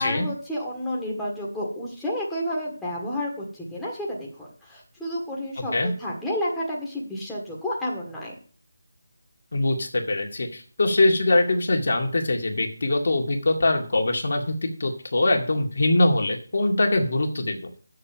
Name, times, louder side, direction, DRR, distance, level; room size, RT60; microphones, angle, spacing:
voice 1, 0.0-8.3, left 1 dB, 5° left, -5 dB, 1.7 m, -30 dB
voice 2, 9.5-17.7, left 2 dB, 60° left, 2 dB, 2.0 m, -23 dB
6.7 x 6.4 x 7.4 m, 0.42 s
figure-of-eight pair, 155°, 0 cm